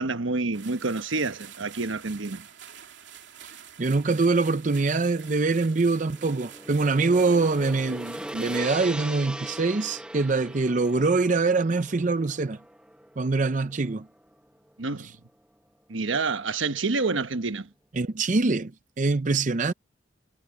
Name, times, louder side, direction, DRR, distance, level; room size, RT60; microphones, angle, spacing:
voice 1, 0.0-2.4 14.8-15.1 15.9-17.7, right 3 dB, 85° right, 1.2 m, -28 dB
sound 1, 0.5-8.6, right 9 dB, 70° right, 2.8 m, -47 dB
voice 2, 3.8-12.6 13.2-14.1 17.9-18.7 19.0-19.7, right 3 dB, 40° right, 0.6 m, -24 dB
Gong, 6.0-14.3, right 1 dB, 5° right, 1.0 m, -40 dB
head